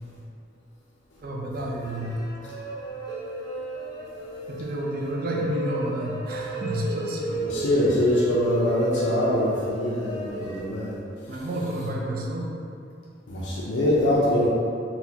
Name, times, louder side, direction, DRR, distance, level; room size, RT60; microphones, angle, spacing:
voice 1, 1.2-2.2 4.5-7.4 11.3-12.5, right 1 dB, 55° right, -2 dB, 0.5 m, -30 dB
sound 1, 1.8-10.6, equal, 20° left, 0.6 m, -35 dB
voice 2, 7.4-11.0 13.3-14.5, equal, 90° left, -6 dB, 0.5 m, -23 dB
4.0 x 2.2 x 2.8 m, 2.5 s
head